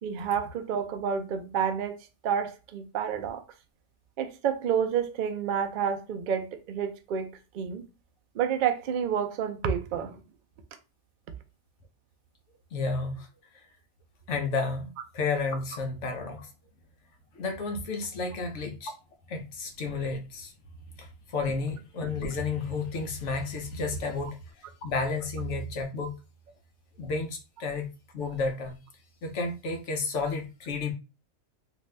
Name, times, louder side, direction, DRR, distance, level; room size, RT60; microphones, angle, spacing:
voice 1, 0.0-2.0 2.2-3.4 4.2-7.3 7.5-7.9 8.3-10.2, right 7 dB, 80° right, 0.4 m, -29 dB
voice 2, 12.7-13.3 14.3-16.5 17.3-18.9 19.3-20.5 21.0-24.4 24.8-26.2 27.0-27.9 28.1-28.8 29.2-30.9, left 3 dB, 65° left, 0.9 m, -31 dB
2.6 x 2.4 x 3.2 m
omnidirectional pair, 1.4 m